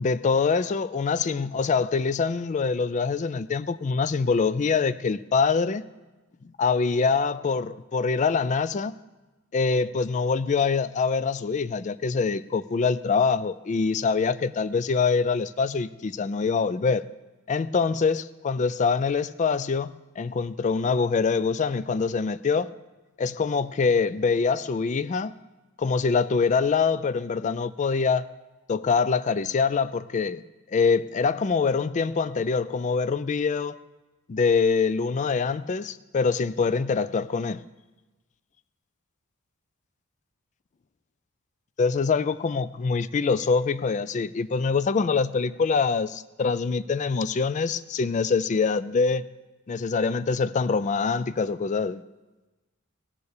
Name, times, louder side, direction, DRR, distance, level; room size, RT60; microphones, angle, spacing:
voice 1, 0.0-5.8 6.6-8.9 9.5-17.0 17.5-22.7 23.2-25.3 25.8-28.3 28.7-30.4 30.7-33.8 34.3-37.6 41.8-49.2 49.7-52.0, left 5 dB, 35° left, 0.3 m, -24 dB
18.0 x 7.0 x 6.6 m
head